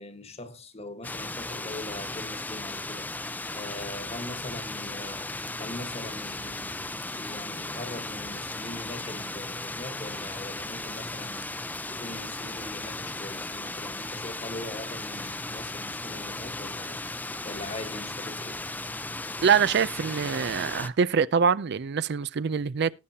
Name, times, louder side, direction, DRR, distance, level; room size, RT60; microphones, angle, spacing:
voice 1, 0.0-17.1 17.4-18.6, left 1 dB, 30° left, 1.4 m, -41 dB
sound 1, 1.0-20.9, left 2 dB, 10° left, 0.5 m, -36 dB
voice 2, 19.4-22.9, right 6 dB, 55° right, 0.4 m, -24 dB
19.0 x 7.1 x 2.8 m
head